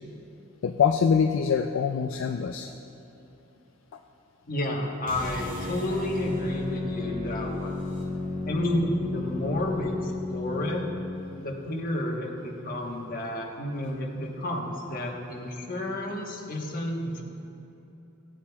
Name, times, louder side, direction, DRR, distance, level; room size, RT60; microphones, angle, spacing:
voice 1, 0.6-2.7, left 6 dB, 65° left, 5 dB, 0.4 m, -24 dB
voice 2, 4.5-7.8 8.4-10.8 11.3-17.2, left 1 dB, 45° left, -1 dB, 1.2 m, -31 dB
sound 1, 5.0-11.3, left 2 dB, 45° right, 2.0 m, -33 dB
15.5 x 8.5 x 2.3 m, 2.9 s
head